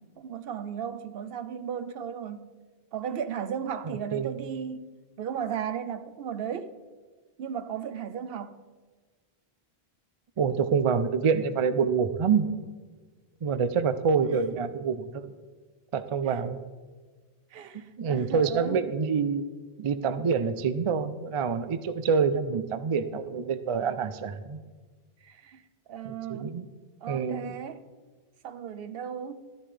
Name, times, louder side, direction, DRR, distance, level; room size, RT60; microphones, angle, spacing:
voice 1, 0.0-2.5 2.9-4.8 5.2-6.7 7.4-8.6 14.2-14.4 16.2-16.4 17.5-18.8 25.2-25.6 25.9-26.5 27.0-27.8 28.4-29.5, right 8 dB, 70° right, 0.8 m, -35 dB
voice 2, 10.4-12.5 13.4-15.3 15.9-16.6 18.0-19.4 19.8-24.6 26.0-26.7 27.1-27.5, right 6 dB, 45° right, 0.4 m, -26 dB
13.0 x 11.0 x 3.3 m
omnidirectional pair, 1.0 m